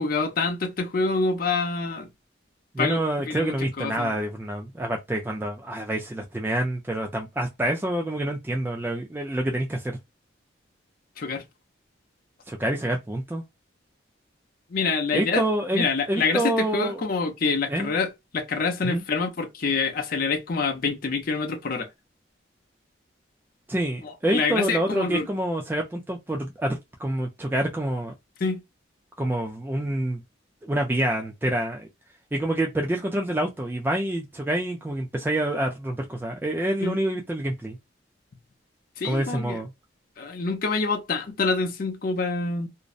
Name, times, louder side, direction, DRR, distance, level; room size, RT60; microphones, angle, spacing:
voice 1, 0.0-2.1 2.8-3.0 3.3-4.1 11.2-11.4 14.7-15.4 15.7-21.9 24.3-25.3 28.4-28.6 36.8-37.0 39.0-39.6 40.2-42.7, left 4 dB, 50° left, 0.5 m, -26 dB
voice 2, 2.7-10.0 12.5-13.4 15.1-17.0 17.7-17.9 18.8-19.0 23.7-28.1 29.2-30.2 30.6-31.9 32.3-37.8 39.0-39.7, right 1 dB, 10° right, 0.3 m, -27 dB
2.6 x 2.0 x 2.3 m
head